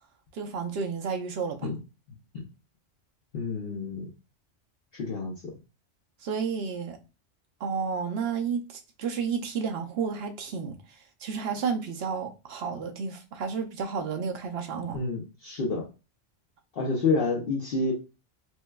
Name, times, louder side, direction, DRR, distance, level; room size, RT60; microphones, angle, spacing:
voice 1, 0.3-1.7 6.2-7.0 7.6-15.0, right 6 dB, 65° right, 0.7 m, -31 dB
voice 2, 3.3-4.1 4.9-5.3 14.9-15.8 16.7-17.9, left 3 dB, 55° left, 0.9 m, -28 dB
4.4 x 2.2 x 2.2 m
omnidirectional pair, 1.2 m